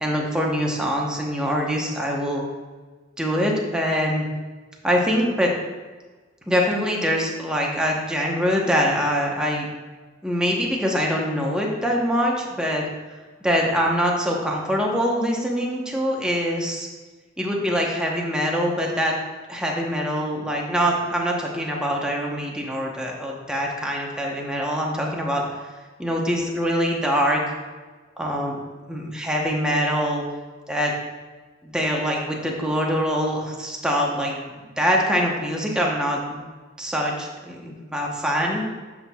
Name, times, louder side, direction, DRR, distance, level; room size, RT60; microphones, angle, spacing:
voice 1, 0.0-2.5 3.2-4.3 4.8-5.5 6.5-9.7 10.2-12.8 13.4-16.9 17.4-19.1 19.5-25.4 26.0-27.4 28.2-28.6 28.9-30.2 30.7-30.9 31.6-36.4 36.8-38.7, equal, 5° right, -2 dB, 0.9 m, -24 dB
8.5 x 5.9 x 2.3 m, 1.3 s
head